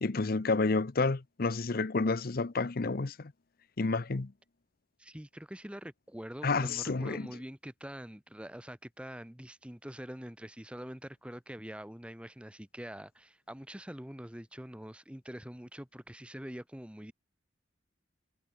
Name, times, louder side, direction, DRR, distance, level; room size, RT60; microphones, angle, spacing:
voice 1, 0.0-3.3 3.8-4.3 6.4-7.3, left 3 dB, 50° left, 0.7 m, -30 dB
voice 2, 5.0-17.1, equal, 5° right, 1.2 m, -45 dB
head